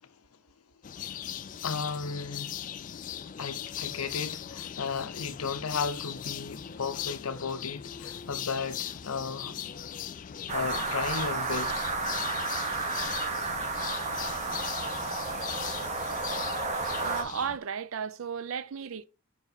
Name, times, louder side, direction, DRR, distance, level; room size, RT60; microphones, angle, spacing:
sound 1, 0.8-17.6, left 9 dB, 35° left, 0.3 m, -39 dB
voice 1, 1.6-2.6 3.3-9.6 10.5-11.8, left 5 dB, 85° left, 0.7 m, -34 dB
sound 2, 10.5-17.2, right 3 dB, 30° right, 0.8 m, -32 dB
voice 2, 17.0-19.0, right 7 dB, 65° right, 0.4 m, -34 dB
5.8 x 4.6 x 4.0 m
head